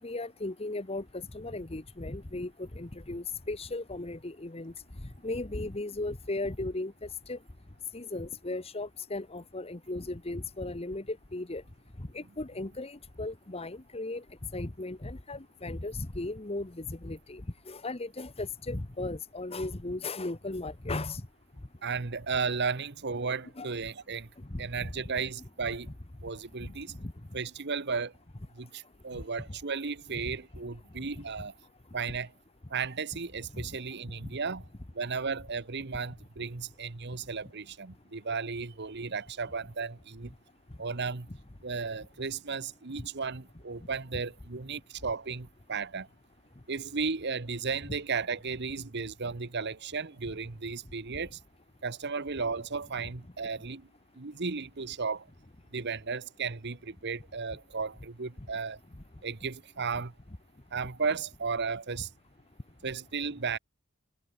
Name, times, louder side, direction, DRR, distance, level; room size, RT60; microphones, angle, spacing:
voice 1, 0.0-4.7 5.2-6.9 7.3-7.4 7.9-11.6 12.1-14.2 14.5-17.4 17.7-21.2 23.6-23.7 24.5-24.6 27.0-27.1 33.5-33.6, left 2 dB, 25° left, 1.1 m, -36 dB
voice 2, 21.8-24.3 24.6-25.9 26.2-27.0 27.3-28.1 28.5-31.5 31.9-32.3 32.7-34.7 34.9-40.3 40.8-41.3 41.6-46.1 46.7-51.4 51.8-53.9 54.1-55.3 55.7-58.8 59.2-60.1 60.7-62.1 62.8-63.6, right 5 dB, 50° right, 1.1 m, -34 dB
head